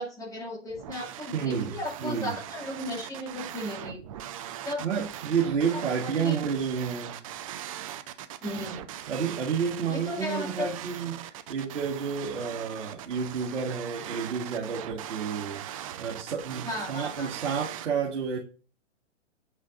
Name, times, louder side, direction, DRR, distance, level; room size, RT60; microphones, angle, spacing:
voice 1, 0.0-4.0 4.6-4.8 5.7-6.4 8.4-8.8 9.9-10.7 16.6-17.3, left 1 dB, 10° left, 2.1 m, -35 dB
sound 1, 0.7-17.9, right 11 dB, 30° right, 0.5 m, -40 dB
voice 2, 1.3-2.4 4.8-7.3 9.1-18.4, right 6 dB, 70° right, 1.8 m, -30 dB
8.3 x 5.0 x 2.5 m
hypercardioid pair, 125°, 37 cm